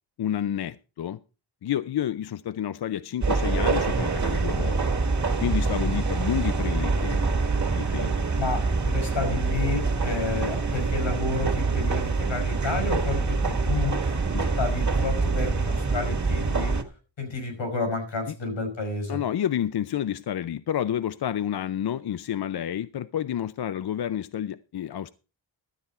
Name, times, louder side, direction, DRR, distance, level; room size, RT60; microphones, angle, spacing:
voice 1, 0.2-1.2 1.6-4.8 5.4-7.3 7.7-8.2 14.3-14.5 18.3-18.4 19.1-25.1, left 10 dB, 60° left, 0.6 m, -29 dB
sound 1, 3.2-16.8, right 4 dB, 40° right, 1.6 m, -25 dB
voice 2, 8.4-14.0 14.6-16.8 17.2-19.2, left 4 dB, 90° left, 5.4 m, -31 dB
12.5 x 9.5 x 4.2 m
wide cardioid pair, 130°, 45 cm